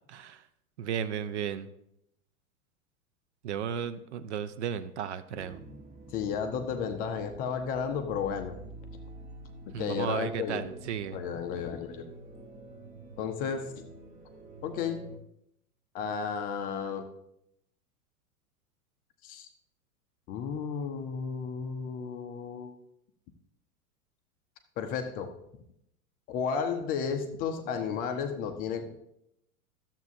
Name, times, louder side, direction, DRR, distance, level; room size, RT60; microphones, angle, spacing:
voice 1, 0.1-0.4 0.8-1.7 3.4-5.6 9.7-11.2, right 8 dB, 50° right, 12 dB, 0.6 m, -34 dB
sound 1, 5.3-15.2, right 2 dB, 20° right, 0.8 m, -48 dB
voice 2, 6.1-8.6 9.7-10.7 11.1-12.0 13.2-13.7 14.6-15.0 15.9-17.1 19.2-19.5 20.3-22.8 24.8-25.4 26.3-28.9, left 6 dB, 20° left, 6 dB, 0.5 m, -33 dB
13.0 x 7.3 x 2.6 m, 0.78 s
figure-of-eight pair, 95°, 44 cm